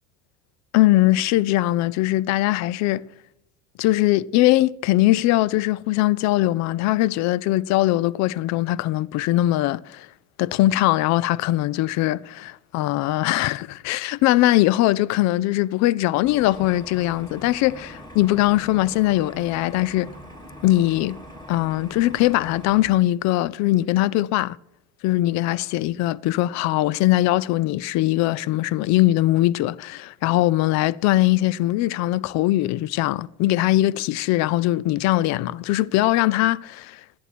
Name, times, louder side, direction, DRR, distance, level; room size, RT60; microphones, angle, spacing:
voice 1, 0.7-3.0 3.8-10.1 10.4-20.1 20.6-21.2 21.5-24.6 25.0-37.0, left 16 dB, 55° left, 0.5 m, -21 dB
sound 1, 16.2-22.9, equal, 15° left, 4.0 m, -42 dB
13.0 x 11.0 x 4.3 m
supercardioid pair, 85°, 32 cm